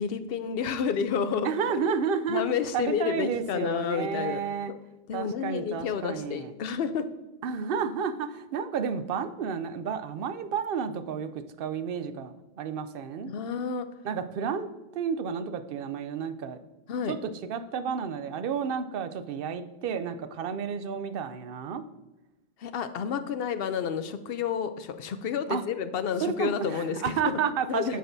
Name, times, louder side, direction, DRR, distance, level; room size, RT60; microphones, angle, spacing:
voice 1, 0.0-1.5 1.8-1.9 2.3-4.4 5.1-7.1 13.3-13.9 16.9-17.2 22.6-27.2 27.7-28.0, left 7 dB, 70° left, 10 dB, 0.8 m, -30 dB
voice 2, 1.4-2.4 2.7-4.7 5.1-6.5 7.4-13.3 14.0-14.7 14.9-16.6 17.1-21.8 25.5-25.6 26.2-28.0, right 6 dB, 65° right, 10 dB, 0.7 m, -31 dB
9.0 x 6.5 x 2.7 m, 1.1 s
omnidirectional pair, 1.1 m